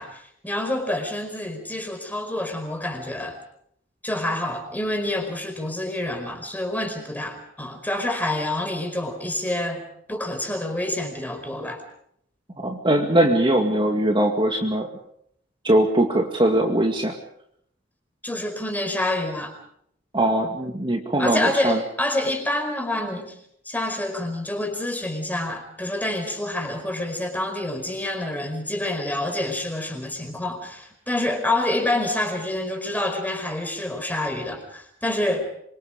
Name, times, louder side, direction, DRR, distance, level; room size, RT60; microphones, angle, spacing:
voice 1, 0.0-3.4 4.0-9.8 10.1-11.8 18.2-19.5 21.2-23.4 23.6-35.4, left 1 dB, 10° left, 5 dB, 4.9 m, -27 dB
voice 2, 12.6-14.9 15.6-17.2 20.1-21.8, right 1 dB, 25° right, 2 dB, 2.2 m, -21 dB
27.0 x 25.0 x 5.2 m, 0.69 s
head